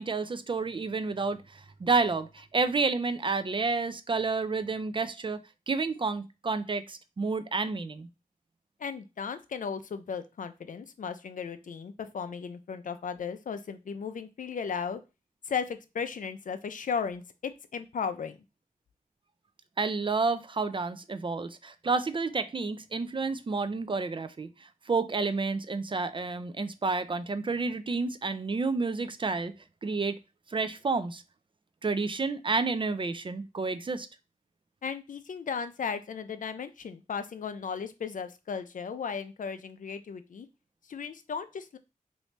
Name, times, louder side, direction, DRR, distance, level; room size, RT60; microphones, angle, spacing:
voice 1, 0.0-5.4 5.7-8.1 19.8-29.5 29.8-30.2 30.5-31.2 31.8-34.1, right 4 dB, 35° right, 0.4 m, -30 dB
voice 2, 8.8-15.0 15.5-18.4 34.8-40.5 40.9-41.8, left 6 dB, 65° left, 0.4 m, -35 dB
3.0 x 2.6 x 3.2 m
cardioid pair, 50°, 14 cm